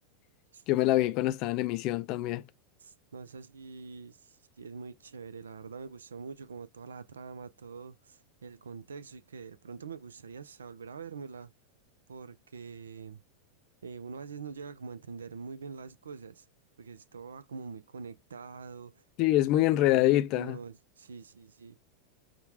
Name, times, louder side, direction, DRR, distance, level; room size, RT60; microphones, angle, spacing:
voice 1, 0.7-2.4 19.2-20.6, left 15 dB, 45° left, 0.4 m, -25 dB
voice 2, 2.8-11.5 12.1-13.2 13.8-16.5 16.8-19.0 19.8-21.8, right 5 dB, 70° right, 0.4 m, -44 dB
5.6 x 2.2 x 2.9 m
figure-of-eight pair, 85°, 0 cm